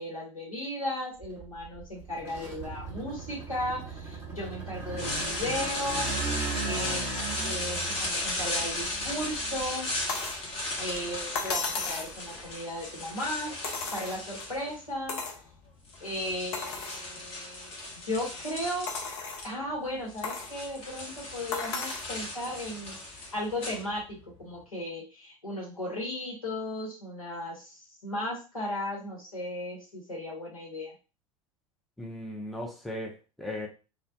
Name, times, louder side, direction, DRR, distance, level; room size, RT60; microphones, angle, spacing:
voice 1, 0.0-7.1 7.4-9.9 10.8-13.5 13.9-15.2 16.0-17.8 18.0-18.9 19.4-30.9, left 1 dB, 85° left, 1.1 m, -36 dB
sound 1, 1.2-10.2 10.7-12.6, right 4 dB, 15° right, 1.1 m, -38 dB
sound 2, 5.0-14.9 15.7-19.5 19.7-24.3, left 2 dB, 35° left, 0.9 m, -36 dB
sound 3, 10.1-10.4 11.4-12.1 13.6-14.4 15.1-15.4 15.9-16.0 16.5-17.0 17.6-17.7 18.9-19.5 20.2-20.5 21.5-22.1 23.3-23.4, left 4 dB, 55° left, 0.6 m, -34 dB
voice 2, 32.0-33.7, left 1 dB, ahead, 0.5 m, -37 dB
2.3 x 2.2 x 2.5 m
figure-of-eight pair, 80°, 17 cm